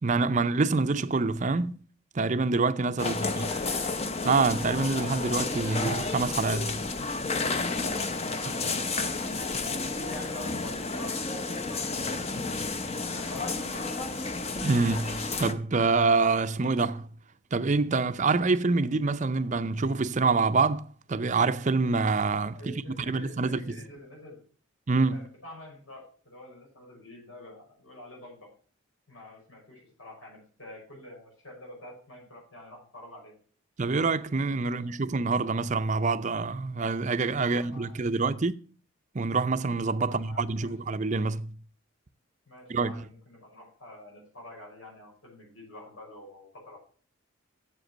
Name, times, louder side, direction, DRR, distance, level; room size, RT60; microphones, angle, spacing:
voice 1, 0.0-1.8 2.1-3.5 4.2-6.8 8.5-8.6 14.6-17.1 17.5-23.6 24.9-25.2 33.8-38.5 39.1-41.6 42.7-43.0, right 3 dB, 35° right, 0.5 m, -26 dB
voice 2, 3.0-4.0 8.2-12.3 13.0-14.1 22.5-24.4 25.1-28.5 29.1-33.3 34.6-34.9 37.4-38.0 40.0-40.7 42.5-46.8, left 1 dB, 90° left, 6.2 m, -47 dB
sound 1, 3.0-15.5, left 3 dB, 30° left, 0.7 m, -31 dB
7.9 x 7.6 x 6.4 m
head